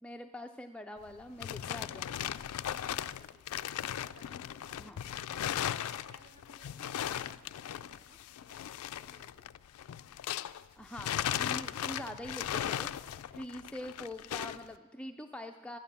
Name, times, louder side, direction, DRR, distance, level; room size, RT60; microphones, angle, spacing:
voice 1, 0.0-2.3 4.8-5.0 10.8-12.9 13.3-15.8, left 1 dB, 5° left, 4 dB, 0.4 m, -44 dB
sound 1, 1.0-10.6 10.9-14.7, left 10 dB, 85° left, 0.4 m, -37 dB
voice 2, 2.9-8.6 9.0-9.4, right 2 dB, 30° right, 7 dB, 0.9 m, -63 dB
12.5 x 9.6 x 6.8 m, 1.2 s
head